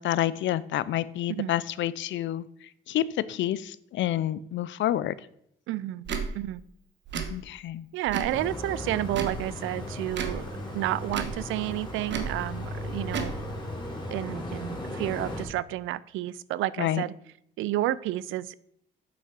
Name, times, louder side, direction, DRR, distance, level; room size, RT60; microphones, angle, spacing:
voice 1, 0.0-5.1 7.3-7.9 16.8-17.0, left 12 dB, 70° left, 17 dB, 0.5 m, -29 dB
voice 2, 5.7-6.1 6.3-6.6 7.9-10.4 10.7-13.3 14.1-17.1 17.6-18.6, right 15 dB, 85° right, 19 dB, 0.4 m, -30 dB
Tick / Tick-tock, 6.0-6.3 7.1-7.3 8.1-8.4 9.1-9.4 10.1-10.4 11.1-11.4 12.1-12.3 13.1-13.3, right 6 dB, 65° right, 1.2 m, -32 dB
sound 1, 8.3-15.4, left 1 dB, 20° left, 2.7 m, -36 dB
8.2 x 5.9 x 4.7 m, 0.72 s
cardioid pair, 90°, 20 cm